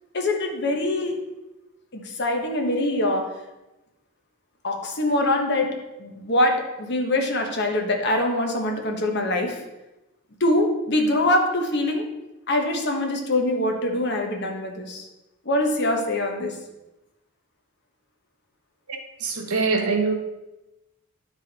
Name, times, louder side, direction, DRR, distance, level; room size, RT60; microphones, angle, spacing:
voice 1, 0.1-1.2 1.9-3.4 4.6-9.6 10.4-12.1 12.5-15.1 15.4-16.5, left 1 dB, 50° left, 3 dB, 1.2 m, -24 dB
voice 2, 18.9-20.1, right 4 dB, 85° right, 3 dB, 1.2 m, -24 dB
11.0 x 4.9 x 4.2 m, 0.99 s
head